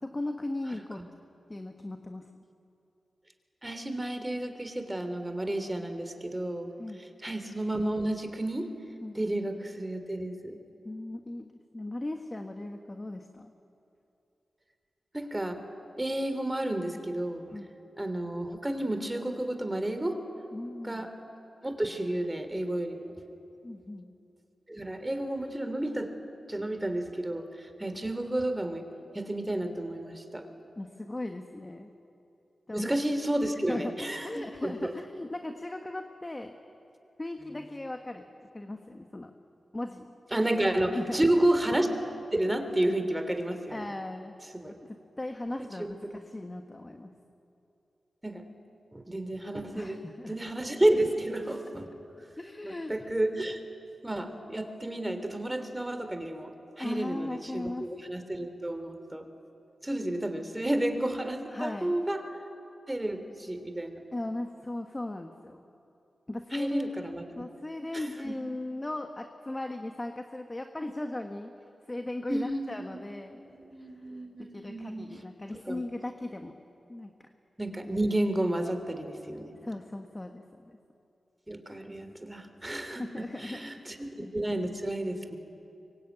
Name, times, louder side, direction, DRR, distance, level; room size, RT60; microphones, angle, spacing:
voice 1, 0.0-1.0 1.5-2.2 6.8-7.0 9.0-9.2 10.8-13.5 17.5-17.7 20.5-21.1 23.6-24.1 30.8-31.9 32.7-33.0 33.7-36.6 37.2-38.3 38.5-39.3 39.7-40.1 40.9-41.3 43.7-44.3 44.7-47.1 49.7-50.4 52.4-53.0 56.8-57.9 61.5-62.0 64.1-65.6 66.3-66.9 67.4-71.5 71.9-73.4 74.4-76.6 76.9-77.3 79.6-80.8 83.0-84.3, left 2 dB, 25° left, 5 dB, 1.5 m, -38 dB
voice 2, 3.6-6.7 7.0-8.7 9.1-10.6 15.1-15.6 16.0-17.5 18.0-20.2 20.8-21.1 21.6-23.1 24.7-26.1 26.5-28.9 29.1-30.5 32.7-34.9 40.3-41.9 42.3-43.9 44.5-44.8 45.6-46.1 48.2-48.4 48.9-50.0 50.3-51.9 52.6-53.6 54.0-59.2 59.8-62.2 62.9-64.0 66.5-67.4 67.9-68.3 72.3-73.0 73.4-75.1 75.5-75.8 77.6-79.5 81.5-83.0 83.4-85.4, right 1 dB, 15° right, 8 dB, 3.0 m, -31 dB
24.5 x 23.0 x 9.3 m, 2.8 s
cardioid pair, 65°, 0 cm